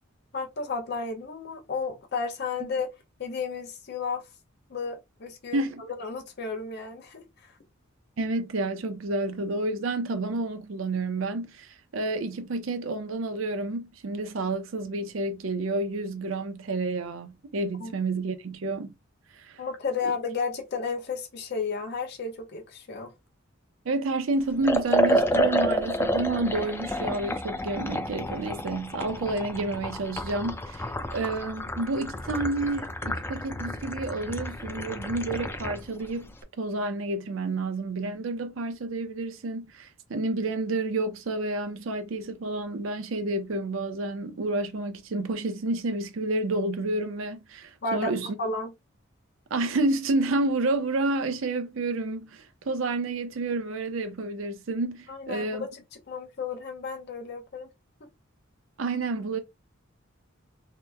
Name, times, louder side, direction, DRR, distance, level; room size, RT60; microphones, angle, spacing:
voice 1, 0.3-2.9 3.2-4.2 4.7-7.5 17.8-17.9 19.6-23.1 47.8-48.1 48.4-48.7 55.1-55.8 56.1-57.7, left 4 dB, 55° left, 0.7 m, -33 dB
voice 2, 8.2-18.9 19.3-19.6 23.9-30.9 31.1-36.3 36.6-48.4 49.5-55.7 58.8-59.4, right 2 dB, 70° right, 0.5 m, -30 dB
Liquid, 24.6-35.8, equal, 10° left, 0.4 m, -29 dB
2.8 x 2.1 x 3.3 m
head